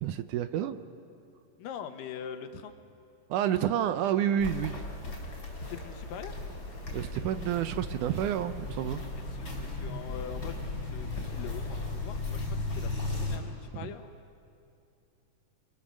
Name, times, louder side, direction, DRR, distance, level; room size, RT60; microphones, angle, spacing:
voice 1, 0.0-0.8 3.3-4.8 6.9-9.0 13.7-13.9, right 10 dB, 75° right, 11 dB, 2.1 m, -29 dB
voice 2, 1.6-2.7 5.6-6.4 9.3-12.9 13.2-14.1, left 8 dB, 80° left, 8 dB, 2.8 m, -43 dB
Walk footsteps, 4.4-13.4, left 2 dB, 25° left, 4.4 m, -36 dB
29.0 x 24.5 x 6.4 m, 2.6 s
omnidirectional pair, 3.9 m